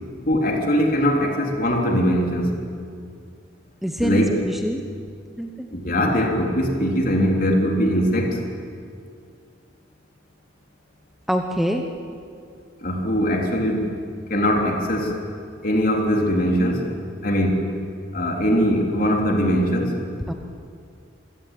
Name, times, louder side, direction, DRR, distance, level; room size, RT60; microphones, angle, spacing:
voice 1, 0.3-2.5 4.0-4.3 5.7-8.4 12.8-14.0 14.3-15.2 15.6-16.9 17.2-17.7 18.1-20.0, equal, 45° left, 1 dB, 3.6 m, -21 dB
voice 2, 3.8-4.8 5.4-5.7 11.3-11.8 20.3-20.4, right 1 dB, ahead, 3 dB, 1.0 m, -25 dB
27.0 x 16.5 x 9.2 m, 2.3 s
head